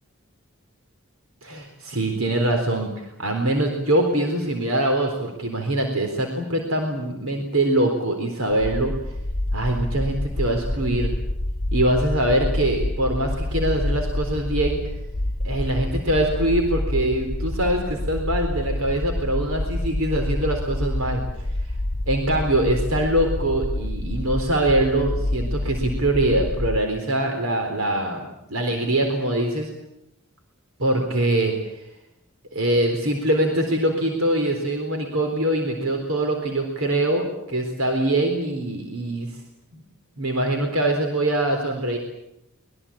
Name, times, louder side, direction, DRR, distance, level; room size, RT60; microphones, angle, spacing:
voice 1, 1.4-8.9 9.5-11.1 11.7-14.8 15.4-21.2 22.1-29.7 30.8-31.8 32.5-39.3 40.2-42.0, right 1 dB, 75° right, 3 dB, 4.0 m, -23 dB
sound 1, 8.6-26.8, left 1 dB, 35° left, 1.0 m, -27 dB
24.5 x 22.0 x 8.7 m, 0.84 s
head